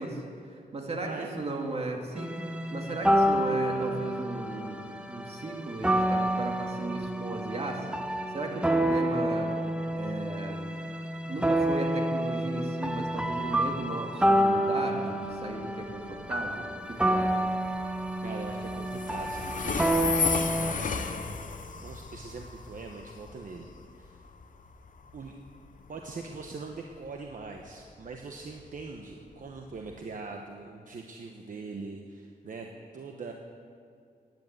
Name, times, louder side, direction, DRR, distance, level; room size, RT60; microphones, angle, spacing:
voice 1, 0.0-2.4 2.7-7.9 8.3-9.5 9.9-10.7 11.2-17.4, right 2 dB, 40° right, 1 dB, 2.2 m, -36 dB
sound 1, 2.2-20.7, right 1 dB, 5° right, 0.7 m, -29 dB
Train, 15.2-30.0, left 5 dB, 55° left, 1.0 m, -36 dB
voice 2, 18.2-19.8 20.1-21.2 21.8-23.7 23.9-24.2 25.1-25.4 25.9-33.3, right 4 dB, 55° right, 2 dB, 1.1 m, -42 dB
16.5 x 10.5 x 8.0 m, 2.3 s
wide cardioid pair, 150°, 16 cm